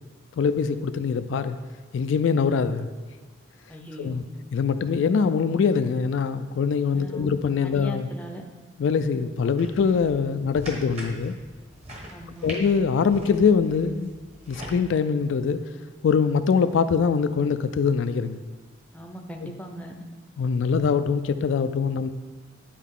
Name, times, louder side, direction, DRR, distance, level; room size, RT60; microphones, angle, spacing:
voice 1, 0.4-1.6 1.9-2.9 4.0-4.2 4.5-8.1 8.8-11.3 12.4-14.1 14.5-15.6 16.0-18.4 19.4-19.5 20.4-22.1, left 5 dB, 70° left, 10 dB, 0.3 m, -23 dB
voice 2, 3.7-4.2 6.9-7.3 7.6-8.4 12.1-12.5 18.9-19.9, equal, 10° left, 3 dB, 0.6 m, -39 dB
sound 1, 9.6-14.8, equal, 35° right, 1.3 m, -42 dB
10.0 x 4.6 x 3.7 m, 1.3 s
head